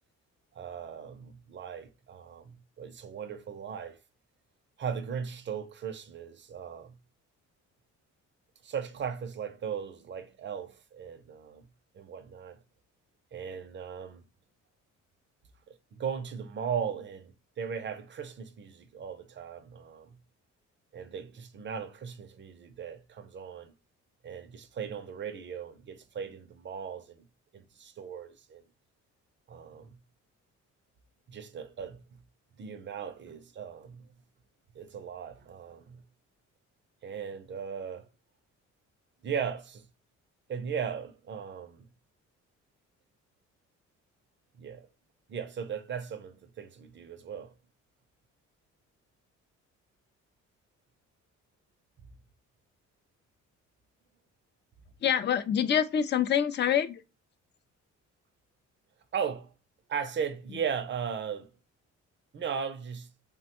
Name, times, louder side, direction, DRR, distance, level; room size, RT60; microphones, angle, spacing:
voice 1, 0.5-4.0 4.8-7.0 8.6-11.7 11.9-12.6 13.3-14.2 15.7-20.2 20.9-23.7 24.2-27.2 27.5-28.6 29.5-30.0 31.3-32.0 32.6-34.1 34.7-36.0 37.0-38.1 39.2-39.9 40.5-41.9 44.6-44.9 45.3-47.5 59.1-59.5 59.9-61.5 62.3-63.1, right 7 dB, 40° right, 0.5 m, -37 dB
voice 2, 55.0-57.0, left 9 dB, 35° left, 0.4 m, -26 dB
3.1 x 2.1 x 2.9 m
cardioid pair, 90°, 30 cm